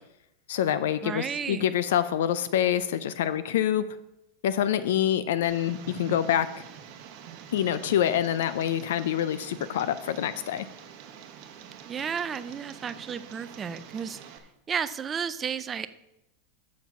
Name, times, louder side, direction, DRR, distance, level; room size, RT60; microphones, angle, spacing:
voice 1, 0.5-3.8 4.4-6.6 7.5-10.7, left 10 dB, 75° left, 14 dB, 0.5 m, -26 dB
voice 2, 1.0-1.7 11.9-15.9, right 7 dB, 15° right, 13 dB, 0.3 m, -33 dB
Tick, 5.4-14.4, right 8 dB, 35° right, 1.0 m, -46 dB
7.2 x 7.1 x 5.9 m, 0.86 s
supercardioid pair, 175°, 0 cm